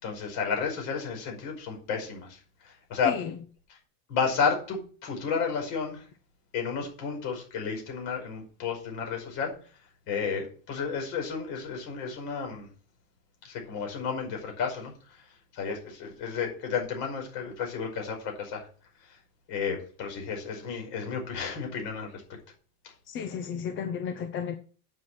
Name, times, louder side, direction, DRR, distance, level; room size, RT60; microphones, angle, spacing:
voice 1, 0.0-3.2 4.1-6.1 6.5-9.5 10.1-12.7 13.4-14.9 15.5-18.7 19.5-22.4, left 6 dB, 50° left, 2 dB, 5.5 m, -32 dB
voice 2, 23.1-24.6, left 7 dB, 25° left, 7 dB, 0.8 m, -33 dB
9.1 x 6.4 x 7.6 m, 0.41 s
supercardioid pair, 160°, 45 cm